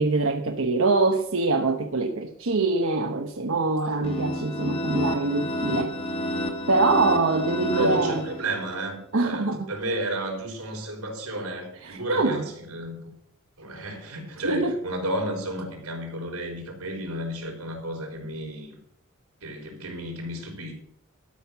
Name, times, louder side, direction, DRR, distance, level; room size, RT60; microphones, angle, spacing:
voice 1, 0.0-5.9 6.7-8.3 9.1-9.7 11.8-12.4 14.4-14.8, right 3 dB, 65° right, 4 dB, 0.9 m, -24 dB
sound 1, 4.0-8.8, equal, 25° left, 1.4 m, -30 dB
voice 2, 7.6-13.1 13.6-18.8 19.4-20.7, right 1 dB, 90° right, 2 dB, 4.1 m, -32 dB
12.5 x 6.4 x 7.0 m, 0.74 s
head